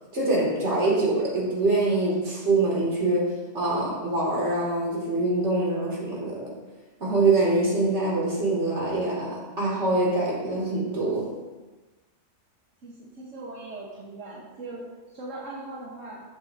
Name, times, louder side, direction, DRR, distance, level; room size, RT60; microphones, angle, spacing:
voice 1, 0.1-6.5 7.0-11.3, right 2 dB, 65° right, -4 dB, 3.1 m, -24 dB
voice 2, 12.8-16.2, right 2 dB, 90° right, -5 dB, 1.7 m, -40 dB
14.5 x 7.7 x 2.8 m, 1.2 s
omnidirectional pair, 1.3 m